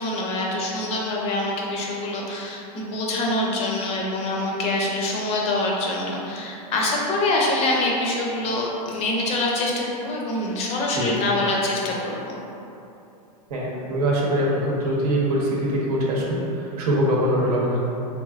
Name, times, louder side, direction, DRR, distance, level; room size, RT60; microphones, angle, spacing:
voice 1, 0.0-12.4, left 2 dB, 30° left, -2 dB, 0.5 m, -25 dB
voice 2, 13.5-16.4 16.8-17.8, equal, 70° right, -4 dB, 0.9 m, -23 dB
3.5 x 3.2 x 2.4 m, 2.8 s
supercardioid pair, 135°, 20 cm